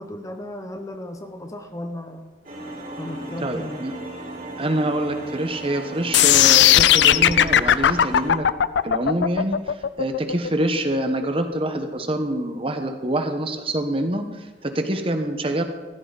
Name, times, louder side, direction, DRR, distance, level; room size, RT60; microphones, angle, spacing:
voice 1, 0.0-2.3 3.0-3.9, left 1 dB, 20° left, 6 dB, 0.9 m, -35 dB
sound 1, 2.4-8.3, right 1 dB, 50° right, 5.0 m, -36 dB
voice 2, 3.4-3.9 4.6-8.5 8.8-15.6, right 1 dB, 30° right, 6 dB, 1.2 m, -26 dB
sound 2, 6.1-12.2, left 11 dB, 85° left, 0.4 m, -17 dB
15.0 x 13.0 x 4.1 m, 1.3 s
head